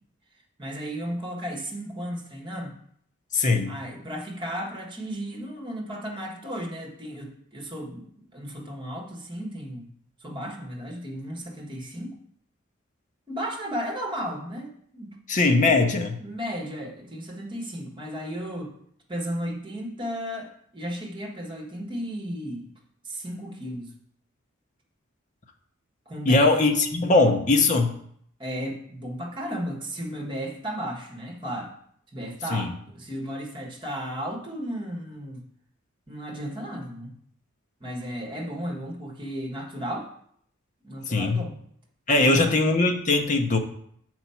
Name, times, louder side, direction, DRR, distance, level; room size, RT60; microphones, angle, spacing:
voice 1, 0.6-2.8 3.7-9.9 10.2-12.1 13.3-15.2 16.2-18.7 19.1-22.7 23.0-23.9 26.1-26.7 28.4-31.7 32.1-35.5 36.1-37.2 37.8-40.1 40.8-41.6 42.2-42.5, equal, 25° right, 1 dB, 1.4 m, -34 dB
voice 2, 3.3-3.7 15.3-16.2 26.3-27.9 32.5-32.7 41.1-41.4 42.1-43.6, left 3 dB, 40° left, 5 dB, 0.8 m, -20 dB
7.1 x 4.6 x 5.6 m, 0.67 s
head